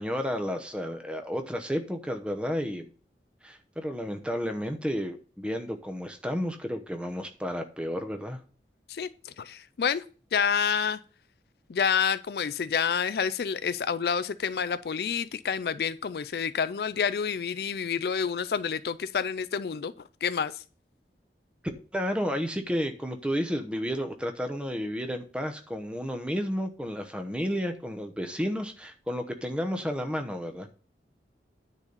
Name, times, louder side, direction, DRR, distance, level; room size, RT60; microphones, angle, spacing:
voice 1, 0.0-2.9 3.4-8.4 21.9-30.7, equal, 5° right, 0.9 m, -32 dB
voice 2, 8.9-10.0 10.3-11.0 11.7-19.9 20.2-20.5, left 6 dB, 60° left, 0.4 m, -28 dB
9.8 x 4.1 x 6.7 m
head